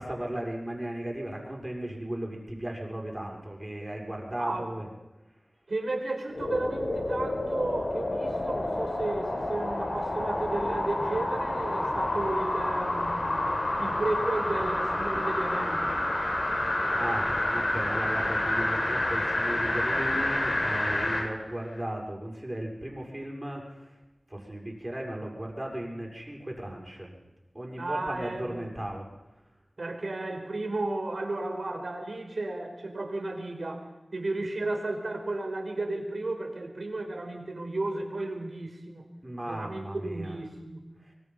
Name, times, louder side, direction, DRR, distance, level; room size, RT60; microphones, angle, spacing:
voice 1, 0.0-4.9 12.0-12.1 17.0-23.9 24.3-27.1 27.5-29.1 39.2-40.4 41.0-41.1, right 1 dB, 25° right, -1 dB, 6.4 m, -36 dB
voice 2, 4.4-4.7 5.7-13.3 13.8-15.9 27.8-28.6 29.8-39.1 39.4-40.8, right 2 dB, 75° right, 4 dB, 4.9 m, -33 dB
sound 1, 6.3-21.3 21.7-21.8, left 1 dB, 70° left, 5.9 m, -29 dB
24.0 x 23.5 x 5.7 m, 1.0 s
wide cardioid pair, 45°, 0 cm